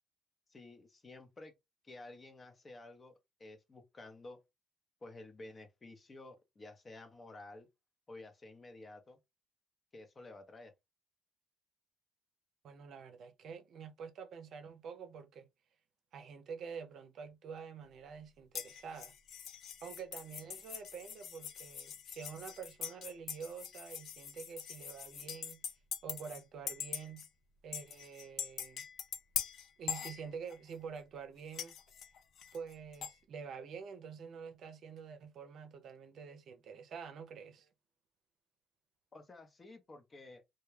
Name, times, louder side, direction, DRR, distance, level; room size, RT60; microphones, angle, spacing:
voice 1, 0.5-1.5 1.8-4.4 5.0-7.7 8.1-9.2 9.9-10.7 39.1-40.4, left 2 dB, 35° left, 0.8 m, -52 dB
voice 2, 12.6-15.5 16.1-19.1 19.8-25.6 26.0-27.3 27.6-28.9 29.8-31.8 32.5-37.7, right 6 dB, 65° right, 0.6 m, -47 dB
sound 1, 18.5-26.4 26.7-27.3 27.7-30.7 31.5-33.2, left 8 dB, 65° left, 0.4 m, -43 dB
2.3 x 2.2 x 3.1 m
supercardioid pair, 60°, 0 cm